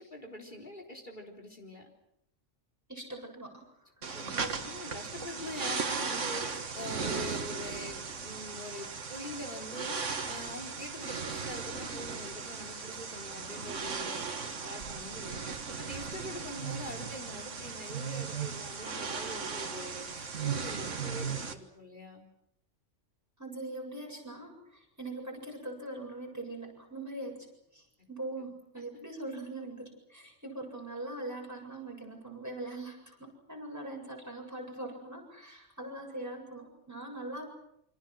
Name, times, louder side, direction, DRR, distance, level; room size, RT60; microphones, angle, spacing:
voice 1, 0.0-1.9 4.1-22.3 28.4-28.5, left 1 dB, 40° left, 3 dB, 4.1 m, -44 dB
voice 2, 2.9-3.7 4.3-4.5 13.6-14.1 23.4-27.5 27.7-37.5, right 2 dB, 15° right, -1 dB, 7.6 m, -42 dB
sound 1, 4.0-21.5, right 5 dB, 75° right, 2.0 m, -37 dB
29.0 x 25.5 x 6.2 m, 0.78 s
omnidirectional pair, 1.3 m